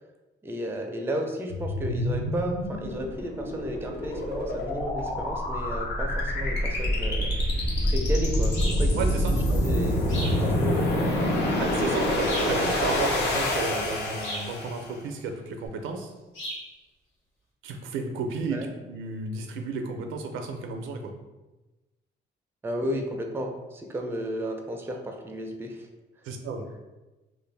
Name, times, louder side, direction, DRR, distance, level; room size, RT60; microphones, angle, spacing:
voice 1, 0.4-7.3 7.8-9.0 9.2-10.8 18.5-18.7 22.6-25.9, equal, 10° right, 3 dB, 0.4 m, -33 dB
sound 1, 1.5-14.9, left 1 dB, 55° left, 0.7 m, -26 dB
sound 2, 8.5-8.9 10.1-10.4 12.2-12.6 14.2-14.5 16.3-16.7, equal, 90° left, 1.2 m, -35 dB
voice 2, 9.0-9.3 11.6-16.1 17.6-21.1 26.2-26.7, right 4 dB, 85° right, 4 dB, 0.4 m, -33 dB
2.4 x 2.1 x 3.2 m, 1.1 s
cardioid pair, 90°, 20 cm